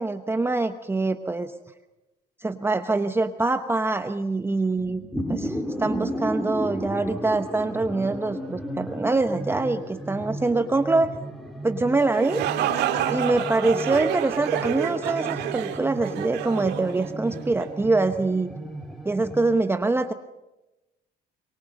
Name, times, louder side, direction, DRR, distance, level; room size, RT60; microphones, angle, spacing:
voice 1, 0.0-1.5 2.4-5.0 5.3-11.2 11.6-12.4 13.1-18.5 19.0-20.1, right 3 dB, 15° right, 8 dB, 0.9 m, -24 dB
sound 1, 4.8-19.5, equal, ahead, 3.6 m, -34 dB
sound 2, 12.0-17.7, right 10 dB, 80° right, 2.0 m, -29 dB
24.0 x 23.5 x 6.6 m, 1.0 s
cardioid pair, 110°, 17 cm